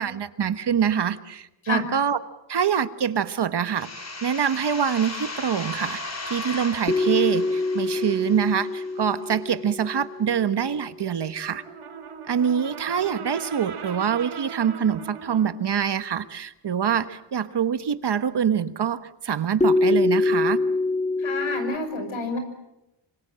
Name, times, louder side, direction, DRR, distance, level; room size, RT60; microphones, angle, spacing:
voice 1, 0.0-2.2 2.5-3.9 4.2-6.0 6.3-11.6 12.3-20.6, right 8 dB, 55° right, 12 dB, 1.3 m, -25 dB
sound 1, 3.8-9.3, left 2 dB, 35° left, 3.5 m, -36 dB
sound 2, 6.9-11.0 19.6-21.8, left 2 dB, 15° left, 1.7 m, -25 dB
Brass instrument, 11.5-15.6, right 7 dB, 85° right, 2.7 m, -39 dB
voice 2, 21.2-22.4, left 2 dB, 75° left, 8 dB, 6.1 m, -28 dB
27.0 x 25.0 x 7.6 m, 0.90 s
wide cardioid pair, 130°, 48 cm